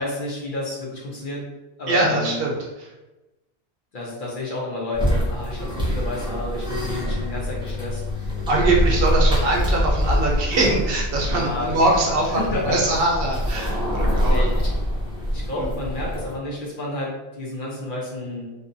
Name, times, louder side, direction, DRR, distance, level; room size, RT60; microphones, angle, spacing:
voice 1, 0.0-1.4 1.8-2.4 3.9-8.3 11.3-11.8 12.4-12.8 14.2-14.7 15.3-18.5, left 2 dB, 55° left, -3 dB, 0.8 m, -30 dB
voice 2, 1.9-2.9 8.5-14.5 15.6-15.7, right 2 dB, 65° right, -1 dB, 0.8 m, -22 dB
sound 1, 4.9-16.4, equal, 5° right, 0.6 m, -24 dB
2.7 x 2.3 x 2.6 m, 1.0 s
omnidirectional pair, 1.1 m